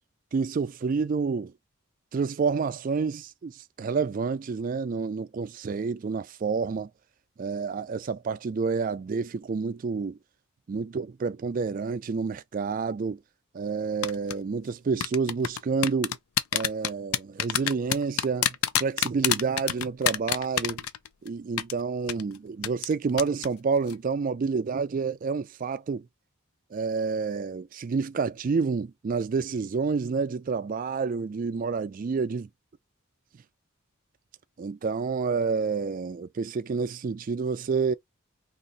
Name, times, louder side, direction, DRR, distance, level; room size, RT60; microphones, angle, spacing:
voice 1, 0.3-1.5 2.1-6.9 7.4-10.2 10.7-13.2 13.5-16.2 16.5-20.8 21.2-26.1 26.7-32.5 34.6-37.9, right 5 dB, 40° right, 0.3 m, -29 dB
sound 1, 14.0-14.3 15.0-21.3 21.6-21.7 22.1-22.2 22.6-22.9 23.2-23.5 23.8-23.9, left 10 dB, 85° left, 0.4 m, -26 dB
2.8 x 2.5 x 3.9 m
head